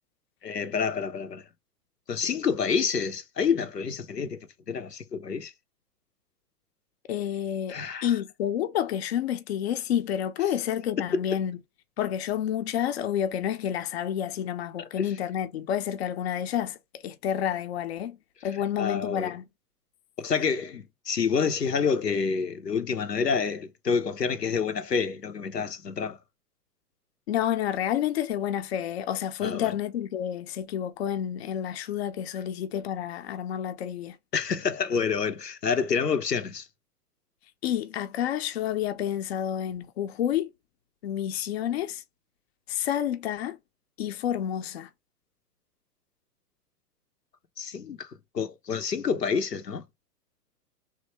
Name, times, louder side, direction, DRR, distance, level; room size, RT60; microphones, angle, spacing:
voice 1, 0.4-1.4 2.1-5.5 7.7-8.1 11.0-11.2 15.0-15.1 18.8-19.3 20.2-26.2 29.4-29.7 34.3-36.7 47.6-48.1 48.3-49.8, left 6 dB, 90° left, 0.6 m, -28 dB
voice 2, 7.1-11.6 12.0-16.8 17.0-18.2 18.4-19.4 27.3-34.2 37.6-40.5 41.0-42.0 42.7-43.6 44.0-44.9, left 10 dB, 45° left, 0.5 m, -29 dB
3.3 x 2.6 x 2.9 m
figure-of-eight pair, 105°, 47 cm